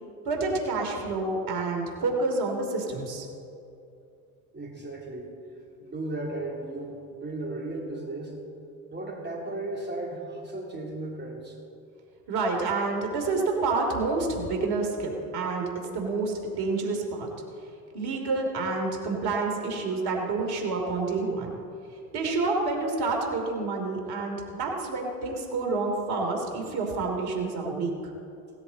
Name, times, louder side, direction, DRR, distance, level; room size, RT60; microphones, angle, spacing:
voice 1, 0.2-3.3 12.3-15.7 15.9-17.3 17.9-21.5 22.1-27.9, right 3 dB, 55° right, 1 dB, 3.0 m, -28 dB
voice 2, 4.5-5.3 5.8-8.4 8.9-11.6, right 2 dB, 25° right, 0 dB, 3.3 m, -35 dB
17.0 x 13.5 x 4.1 m, 2.6 s
hypercardioid pair, 75°, 44 cm